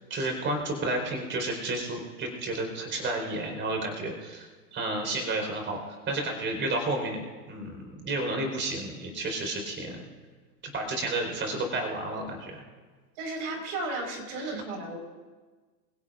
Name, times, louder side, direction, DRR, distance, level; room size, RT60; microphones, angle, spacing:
voice 1, 0.1-7.2 7.5-10.0 10.7-12.6 14.4-14.6, right 2 dB, 25° right, 2 dB, 4.5 m, -31 dB
voice 2, 13.2-15.0, right 2 dB, 60° right, 3 dB, 4.9 m, -34 dB
28.0 x 16.5 x 2.6 m, 1.4 s
hypercardioid pair, 125°, 48 cm